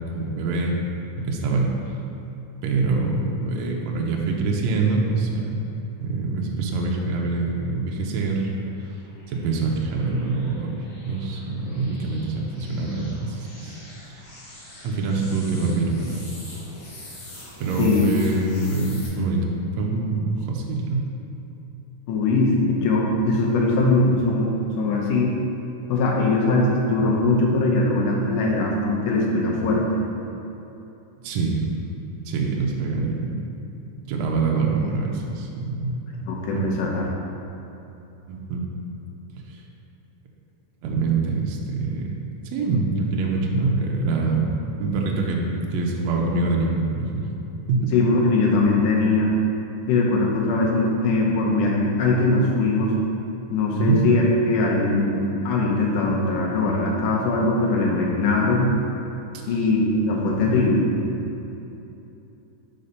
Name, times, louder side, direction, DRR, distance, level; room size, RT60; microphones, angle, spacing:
voice 1, 0.1-0.8 1.2-1.7 2.6-5.6 6.0-8.5 9.3-10.8 11.0-13.8 14.1-14.3 14.8-16.3 17.6-19.5 19.8-21.1 31.2-31.6 32.2-33.4 34.1-36.0 36.5-36.6 38.3-38.6 39.5-39.6 40.8-44.5 44.8-47.3 47.7-47.9 53.8-54.0 59.5-59.6 60.4-60.7, right 3 dB, 75° right, -1 dB, 1.7 m, -25 dB
sound 1, 7.5-19.1, left 1 dB, 55° left, 1.6 m, -45 dB
voice 2, 22.1-25.3 25.9-29.8 36.3-37.1 47.9-49.4 49.9-53.0 53.5-58.7 59.5-60.9, left 2 dB, 80° left, -2 dB, 2.4 m, -21 dB
5.4 x 4.3 x 5.2 m, 2.9 s
omnidirectional pair, 3.6 m